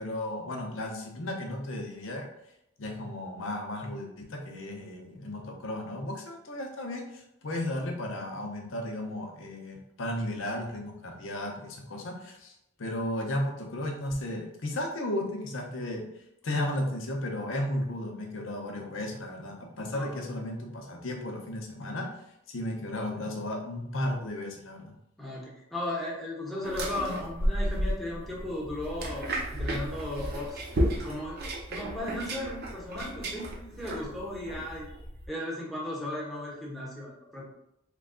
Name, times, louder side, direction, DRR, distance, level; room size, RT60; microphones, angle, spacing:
voice 1, 0.0-2.3 2.8-16.1 16.4-22.1 22.5-24.9, left 1 dB, 80° left, 1 dB, 0.7 m, -34 dB
voice 2, 25.2-34.9 35.3-37.5, left 1 dB, ahead, -6 dB, 0.9 m, -36 dB
sound 1, 26.6-35.3, equal, 55° right, 0.6 m, -33 dB
3.1 x 2.3 x 3.6 m, 0.82 s
head